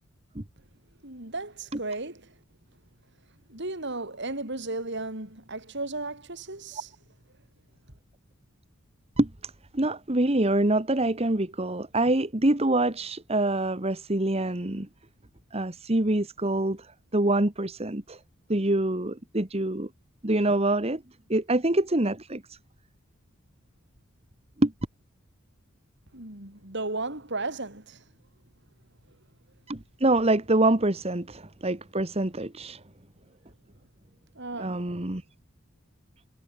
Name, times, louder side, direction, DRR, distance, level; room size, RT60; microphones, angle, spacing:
voice 1, 1.0-2.4 3.5-6.9 26.1-28.1 34.3-34.9, right 2 dB, 55° right, 5.1 m, -35 dB
voice 2, 9.2-14.9 15.5-18.2 18.5-19.9 20.2-21.0 21.3-22.6 24.6-24.7 29.7-32.8 34.6-35.2, right 1 dB, 30° right, 1.5 m, -25 dB
head